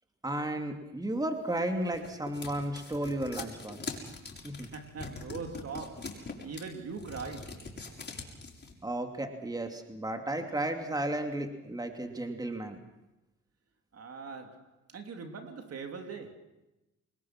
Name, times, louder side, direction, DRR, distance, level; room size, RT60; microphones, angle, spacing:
voice 1, 0.2-4.0 4.4-4.7 8.8-12.8, right 1 dB, 15° right, 2.7 m, -34 dB
sound 1, 1.5-8.7, left 4 dB, 35° left, 6.3 m, -42 dB
voice 2, 4.5-7.7 13.9-16.3, right 5 dB, 55° right, 3.2 m, -42 dB
27.5 x 21.0 x 6.1 m
cardioid pair, 90°, 30 cm